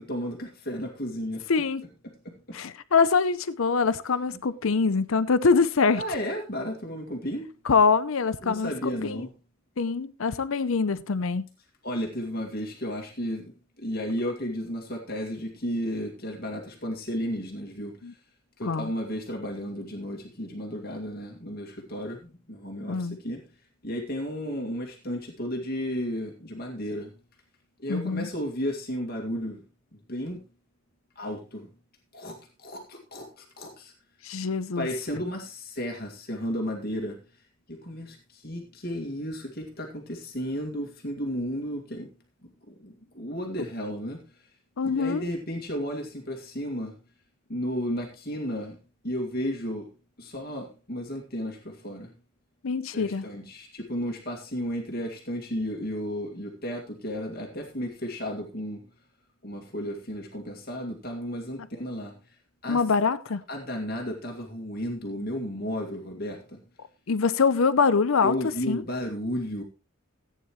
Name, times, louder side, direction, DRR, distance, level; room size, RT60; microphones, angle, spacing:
voice 1, 0.0-1.4 5.9-7.5 8.4-9.3 11.8-17.9 18.6-23.4 23.8-27.1 27.8-29.6 30.1-30.4 31.2-31.7 32.1-33.9 34.8-37.2 37.7-42.1 42.4-44.2 44.8-47.0 47.5-48.8 49.0-49.9 50.2-52.1 52.9-58.8 59.4-62.1 62.6-62.8 63.5-66.6 68.2-69.6, equal, 45° left, 2.1 m, -33 dB
voice 2, 1.5-1.9 2.5-6.0 7.6-9.3 9.8-11.5 18.0-18.1 18.6-18.9 22.9-23.2 27.9-28.3 34.2-34.9 44.8-45.2 52.6-53.3 62.7-63.4 67.1-68.3 68.7-68.8, left 5 dB, 75° left, 0.6 m, -24 dB
15.5 x 9.3 x 3.1 m
head